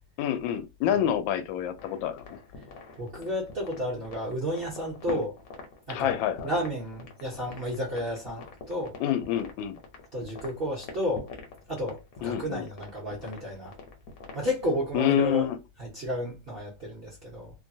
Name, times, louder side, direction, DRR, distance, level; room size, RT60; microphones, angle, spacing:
voice 1, 0.2-2.4 5.1-5.2 5.9-6.5 9.0-9.8 12.2-12.7 14.9-15.6, left 10 dB, 85° left, 1.3 m, -27 dB
sound 1, 1.8-14.6, left 4 dB, 60° left, 1.0 m, -45 dB
voice 2, 3.0-5.3 5.9-6.2 6.4-8.9 10.1-11.3 11.7-13.7 14.3-15.5 15.8-17.5, equal, 45° right, 0.8 m, -32 dB
3.1 x 2.2 x 2.6 m
omnidirectional pair, 2.1 m